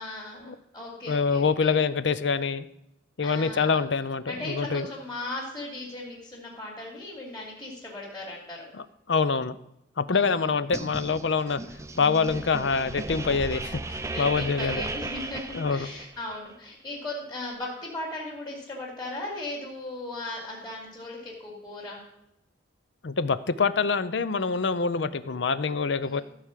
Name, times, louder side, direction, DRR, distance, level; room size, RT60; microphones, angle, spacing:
voice 1, 0.0-1.8 3.2-3.8 4.3-8.7 10.1-10.5 14.0-22.0 26.0-26.2, left 2 dB, 20° left, -8 dB, 3.0 m, -37 dB
voice 2, 1.1-2.7 3.2-4.9 8.7-9.6 10.0-11.6 12.0-14.8 15.5-15.9 23.0-26.2, left 5 dB, 70° left, 14 dB, 0.6 m, -25 dB
sound 1, 10.7-16.4, right 2 dB, 15° right, 0.5 m, -36 dB
14.5 x 4.9 x 7.4 m, 0.83 s
head